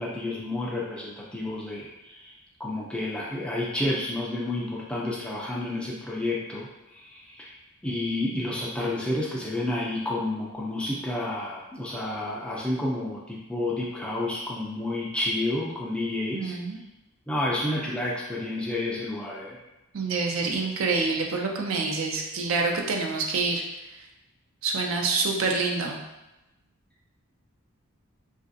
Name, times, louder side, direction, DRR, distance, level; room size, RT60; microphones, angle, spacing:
voice 1, 0.0-2.3 2.6-6.7 7.0-7.5 7.8-16.5 17.3-19.5, left 1 dB, 5° left, -4 dB, 0.3 m, -30 dB
voice 2, 16.3-16.8 19.9-23.6 24.6-26.0, right 4 dB, 65° right, 1 dB, 0.4 m, -27 dB
3.0 x 2.5 x 2.5 m, 0.99 s
head